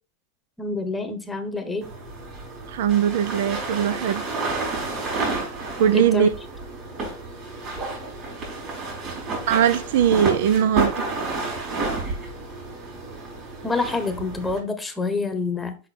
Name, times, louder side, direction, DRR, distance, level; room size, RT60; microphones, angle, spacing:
voice 1, 0.6-1.9 5.9-6.3 13.6-15.8, left 3 dB, 5° left, 1.1 m, -27 dB
sound 1, 1.8-14.6, right 3 dB, 30° right, 4.5 m, -31 dB
voice 2, 2.7-4.3 5.8-6.3 9.5-10.9, right 9 dB, 65° right, 0.5 m, -20 dB
6.4 x 5.3 x 4.2 m
supercardioid pair, 140°, 0 cm